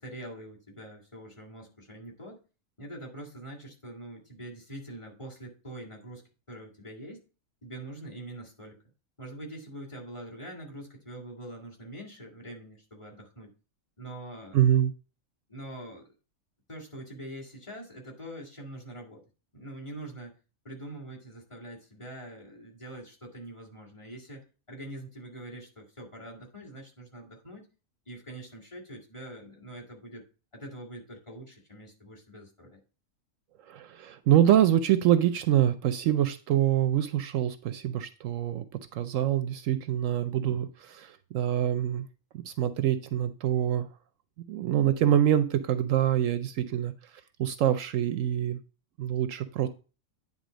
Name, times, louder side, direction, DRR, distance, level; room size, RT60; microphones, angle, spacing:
voice 1, 0.0-2.4 2.8-6.2 6.5-7.2 7.6-8.8 9.2-13.5 14.0-14.6 15.5-16.1 16.7-19.2 19.5-20.4 20.6-27.7 28.1-30.2 30.5-32.8, right 1 dB, 20° left, 0 dB, 2.1 m, -44 dB
voice 2, 14.5-14.9 33.7-38.7 38.9-42.1 42.4-43.9 44.5-46.9 47.4-48.6 49.0-49.7, right 11 dB, 75° right, 11 dB, 0.9 m, -25 dB
9.6 x 3.8 x 5.1 m, 0.34 s
omnidirectional pair, 1.4 m